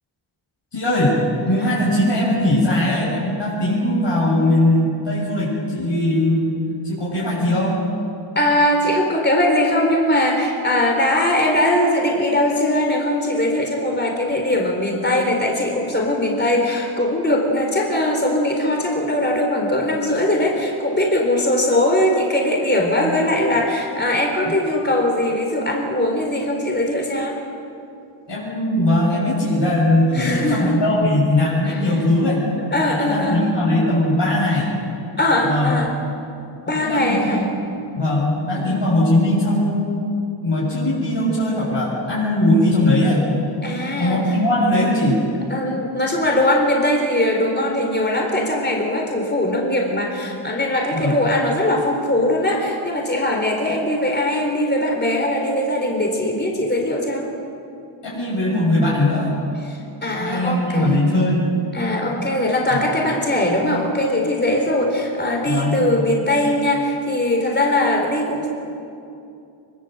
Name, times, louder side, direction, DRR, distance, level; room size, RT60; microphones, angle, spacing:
voice 1, 0.7-1.2 1.5-6.5 6.8-7.8 28.3-32.4 32.8-34.7 35.4-35.7 36.6-37.6 38.0-40.0 40.4-43.3 44.0-45.2 50.9-51.1 58.0-59.3 60.2-61.5 65.5-65.8, left 1 dB, 55° left, -7 dB, 7.5 m, -19 dB
voice 2, 8.3-27.4 30.1-30.8 31.7-32.0 32.7-33.5 35.2-35.9 36.6-37.5 38.5-38.8 43.6-44.2 45.5-57.3 59.7-61.0 61.7-68.5, left 1 dB, 20° left, 0 dB, 4.2 m, -20 dB
24.0 x 23.5 x 8.0 m, 2.7 s
wide cardioid pair, 95°, 50 cm